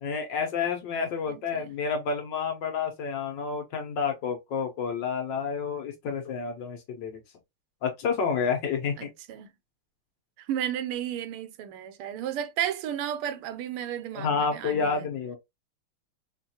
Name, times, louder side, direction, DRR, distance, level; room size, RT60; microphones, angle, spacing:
voice 1, 0.0-7.2 7.8-9.1 14.1-15.4, left 5 dB, 65° left, 1.3 m, -29 dB
voice 2, 1.3-1.7 9.0-9.5 10.4-15.1, right 10 dB, 85° right, 1.5 m, -33 dB
4.4 x 2.5 x 2.7 m
omnidirectional pair, 2.4 m